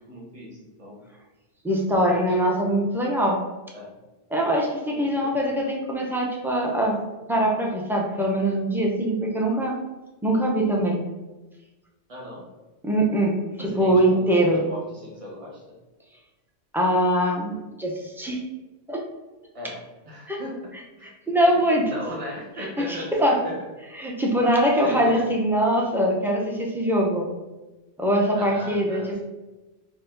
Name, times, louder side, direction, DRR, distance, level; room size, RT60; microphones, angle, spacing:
voice 1, 0.1-1.0 1.9-2.5 3.7-3.9 4.9-5.3 12.1-12.4 13.6-15.6 19.5-20.6 21.0-21.1 21.8-23.6 24.8-25.2 28.3-29.1, left 1 dB, 35° right, -3 dB, 1.0 m, -38 dB
voice 2, 1.6-3.4 4.3-7.0 7.3-9.8 10.2-11.0 12.8-14.7 16.7-18.4 18.9-19.0 20.3-20.4 21.0-21.9 22.6-23.4 24.0-27.3 28.0-29.2, right 1 dB, 5° right, -2 dB, 0.3 m, -23 dB
4.8 x 2.1 x 3.8 m, 1.1 s
omnidirectional pair, 1.1 m